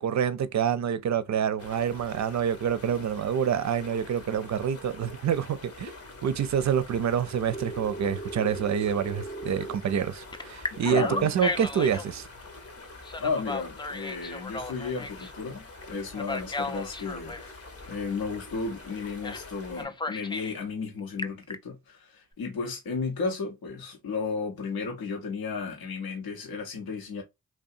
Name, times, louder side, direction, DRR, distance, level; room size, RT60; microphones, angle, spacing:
voice 1, 0.0-5.9 6.2-12.3, right 8 dB, 50° right, 0.5 m, -27 dB
sound 1, 1.6-19.8, left 3 dB, 40° left, 0.8 m, -46 dB
Telephone, 7.5-9.8 10.3-12.1 13.0-15.3 16.1-17.5 19.2-19.5 19.8-20.6 21.0-21.5, left 2 dB, 15° left, 0.4 m, -35 dB
voice 2, 10.7-11.3 13.2-27.2, left 4 dB, 80° left, 0.9 m, -33 dB
2.7 x 2.2 x 2.5 m
cardioid pair, 50°, 36 cm